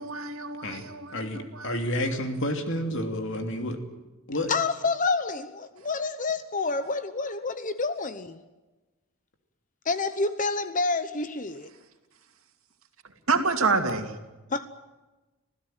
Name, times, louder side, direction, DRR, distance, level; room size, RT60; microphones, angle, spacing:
voice 1, 0.0-1.7 13.3-14.1, right 4 dB, 70° right, 2.5 m, -27 dB
voice 2, 1.1-3.8 4.3-4.5, left 1 dB, 55° left, 2.9 m, -30 dB
voice 3, 4.5-8.4 9.8-11.7 14.5-14.7, left 3 dB, 35° left, 0.9 m, -28 dB
26.5 x 16.0 x 9.1 m
head